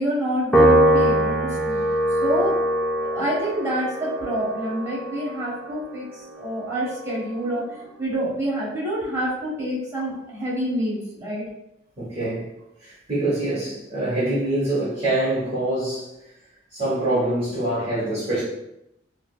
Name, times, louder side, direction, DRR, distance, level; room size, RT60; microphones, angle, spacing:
voice 1, 0.0-1.8 2.2-2.5 3.1-7.6 8.0-11.4, equal, 15° right, -10 dB, 1.5 m, -27 dB
Piano, 0.5-7.1, right 1 dB, 5° left, 0.4 m, -22 dB
voice 2, 12.0-12.5 12.8-16.3 16.7-18.4, right 1 dB, 35° right, -10 dB, 1.1 m, -25 dB
4.7 x 2.0 x 2.3 m, 0.85 s
head